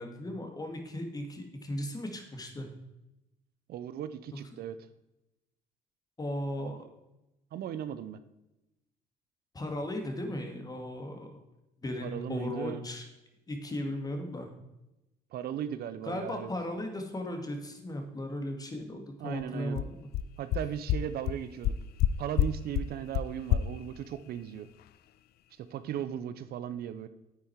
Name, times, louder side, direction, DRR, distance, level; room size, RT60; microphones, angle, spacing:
voice 1, 0.0-2.7 6.2-6.8 9.5-11.4 11.8-13.0 13.5-14.5 16.0-20.1, left 1 dB, 20° left, 4 dB, 2.2 m, -36 dB
voice 2, 3.7-4.8 6.6-6.7 7.5-8.2 12.0-12.8 15.3-16.5 19.2-19.8 20.4-21.8 22.2-24.7 25.6-27.1, right 10 dB, 65° right, 13 dB, 0.8 m, -37 dB
sound 1, 19.4-19.5 19.8-19.9 20.1-20.2 20.5-20.6 20.9-21.0 21.3-21.4 21.6-22.1 22.4-22.5 22.7-22.8 23.1-23.2 23.5-23.6, left 13 dB, 70° left, 0.5 m, -25 dB
9.4 x 8.7 x 4.7 m, 0.94 s
cardioid pair, 110°, 17 cm